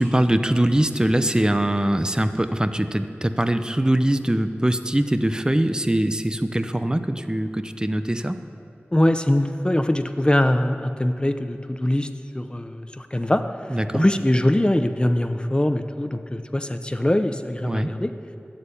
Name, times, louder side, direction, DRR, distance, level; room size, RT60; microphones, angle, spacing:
voice 1, 0.0-8.4 13.7-14.1 17.6-18.0, right 1 dB, 20° right, 10 dB, 0.6 m, -22 dB
voice 2, 8.9-12.1 12.3-13.4 13.9-18.1, left 1 dB, 20° left, 8 dB, 0.7 m, -22 dB
12.5 x 7.7 x 8.3 m, 2.6 s
wide cardioid pair, 50°, 4 cm